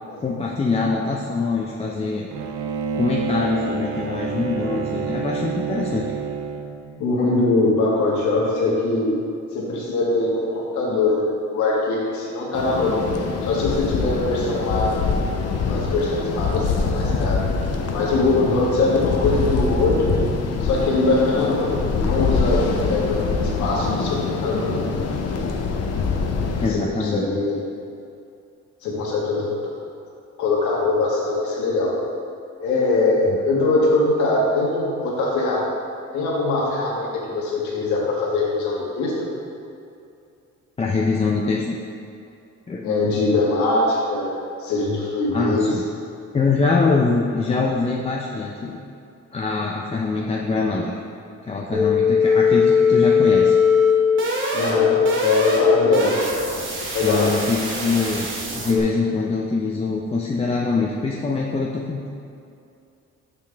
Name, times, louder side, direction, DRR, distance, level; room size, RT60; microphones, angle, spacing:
voice 1, 0.2-2.3 2.9-6.1 26.6-27.3 33.3-33.4 40.8-41.8 42.7-42.9 45.3-45.8 46.3-48.8 49.3-50.9 51.4-53.6 56.0-56.1 57.0-58.3 58.5-62.1, left 4 dB, 20° left, -2 dB, 0.5 m, -23 dB
Bowed string instrument, 2.3-7.0, right 5 dB, 80° right, 0.6 m, -28 dB
voice 2, 7.0-9.2 9.5-13.0 13.4-15.0 15.6-17.4 17.9-20.2 20.6-24.7 26.6-27.6 28.8-29.7 30.4-32.0 32.6-35.7 36.1-39.3 42.8-44.3 44.6-45.7 54.5-56.2 56.9-57.3, left 2 dB, 90° left, -4 dB, 1.6 m, -22 dB
sound 1, 12.5-26.7, left 4 dB, 60° left, 0.7 m, -24 dB
sound 2, 51.7-58.8, left 5 dB, 45° right, 1.2 m, -20 dB
6.8 x 5.8 x 3.4 m, 2.6 s
cardioid pair, 115°, 29 cm